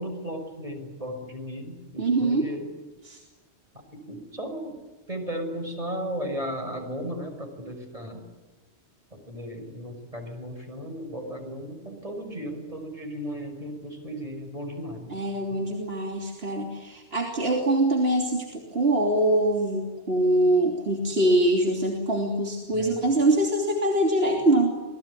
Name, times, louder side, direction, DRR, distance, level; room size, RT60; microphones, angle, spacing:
voice 1, 0.0-2.7 3.9-4.8 5.1-8.3 9.1-15.1 15.5-15.6 16.5-16.6 22.7-23.0, equal, 30° right, 4 dB, 6.2 m, -35 dB
voice 2, 2.0-2.5 3.0-3.2 15.1-24.8, right 1 dB, 60° right, 0 dB, 3.4 m, -23 dB
28.0 x 20.5 x 9.9 m, 1.2 s
omnidirectional pair, 1.1 m